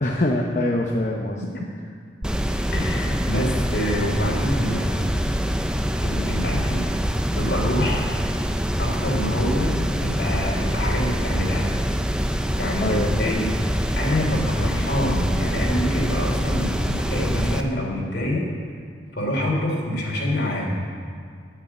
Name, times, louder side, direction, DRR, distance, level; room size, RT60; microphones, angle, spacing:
voice 1, 0.0-1.4 12.8-13.4 14.3-14.7, left 1 dB, 40° left, -1 dB, 0.9 m, -24 dB
sound 1, 2.2-17.6, equal, 5° right, 0.5 m, -25 dB
voice 2, 2.7-5.1 6.0-6.9 7.4-8.1 8.8-11.7 12.3-13.5 14.0-18.4 19.1-20.8, left 1 dB, 60° left, -2 dB, 3.4 m, -26 dB
9.8 x 9.1 x 9.1 m, 2.2 s
head